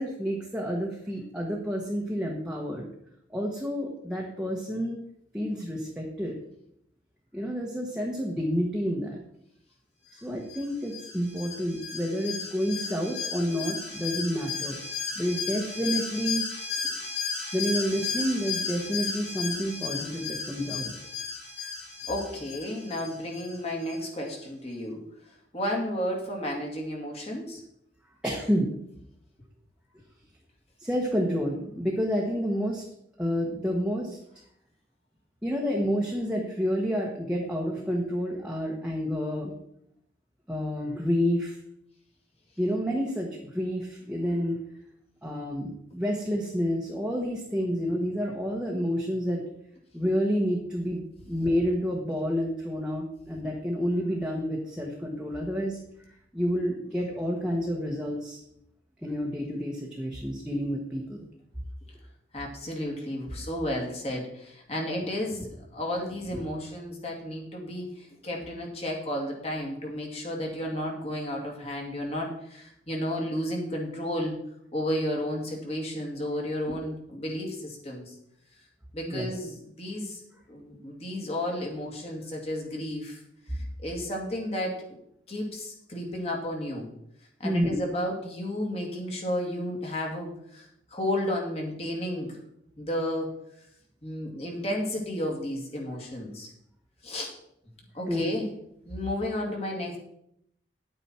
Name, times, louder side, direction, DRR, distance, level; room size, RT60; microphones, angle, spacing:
voice 1, 0.0-2.9 3.3-5.0 5.3-6.4 7.3-9.2 10.1-14.8 15.2-16.4 17.5-20.9 28.2-28.7 30.8-32.8 33.2-34.2 35.4-39.5 40.5-41.6 42.6-44.6 45.2-49.4 49.9-55.8 56.3-58.4 59.0-61.2 79.1-79.3 87.4-87.8 98.1-98.4, equal, 5° right, -2 dB, 1.3 m, -29 dB
Alarm, 10.5-24.0 24.3-24.4, left 5 dB, 70° left, 5.1 m, -35 dB
voice 2, 22.1-25.1 25.5-27.6 62.3-74.4 74.7-78.1 78.9-80.2 80.5-83.2 83.5-85.0 85.3-86.9 87.4-92.4 92.8-93.3 94.0-96.5 97.0-97.3 97.9-98.5 98.9-100.0, left 1 dB, 35° left, 0 dB, 2.5 m, -32 dB
10.0 x 8.9 x 4.4 m, 0.74 s
head